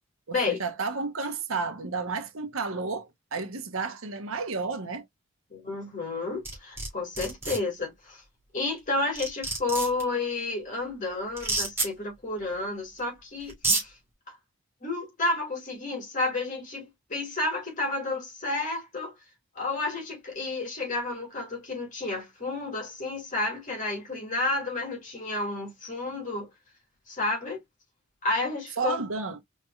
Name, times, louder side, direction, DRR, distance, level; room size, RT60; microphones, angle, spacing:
voice 1, 0.3-5.0 28.8-29.4, right 4 dB, 85° right, 1.0 m, -32 dB
voice 2, 5.5-8.2 8.5-13.9 14.8-19.1 19.5-26.5 27.1-27.6 28.2-29.0, left 2 dB, 40° left, 2.4 m, -31 dB
sound 1, 6.4-6.9 7.2-7.6 8.8-8.9 9.2-10.0 11.4-11.9 13.0-13.1 13.5-13.8, right 3 dB, 10° right, 2.1 m, -27 dB
4.5 x 3.3 x 2.3 m
head